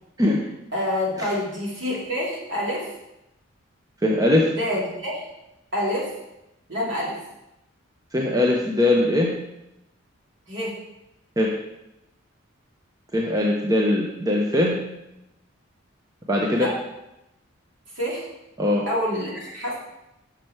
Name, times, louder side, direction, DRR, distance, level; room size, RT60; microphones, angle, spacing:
voice 1, 0.7-2.9 4.4-5.2 5.7-6.1 6.7-7.2 10.5-10.7 16.5-16.7 17.9-18.3 18.9-19.8, left 1 dB, 60° right, -5 dB, 2.7 m, -27 dB
voice 2, 4.0-4.5 8.1-9.4 11.4-11.5 13.1-14.8 16.3-16.7 18.6-18.8, left 1 dB, 15° right, -2 dB, 0.6 m, -21 dB
6.4 x 5.9 x 4.6 m, 0.88 s
head